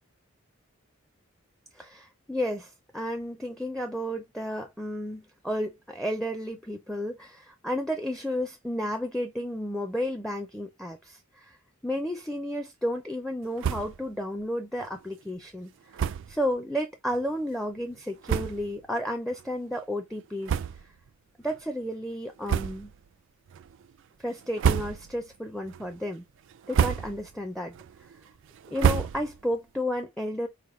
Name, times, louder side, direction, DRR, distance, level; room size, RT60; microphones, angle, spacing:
voice 1, 1.7-11.6 11.8-20.6 21.4-22.9 24.2-26.2 26.7-27.8 28.7-30.5, equal, ahead, 0.5 m, -32 dB
sound 1, 13.6-14.1 14.4-14.5 14.8-14.9 15.9-16.4 17.1-17.2 17.9-18.0 18.2-18.8 19.3-19.5 20.4-21.1 21.4-21.6 22.4-23.0 23.5-23.9 24.4-25.3 25.7-26.1 26.5-27.3 27.7-29.5, right 8 dB, 60° right, 0.3 m, -29 dB
4.9 x 2.1 x 3.2 m
head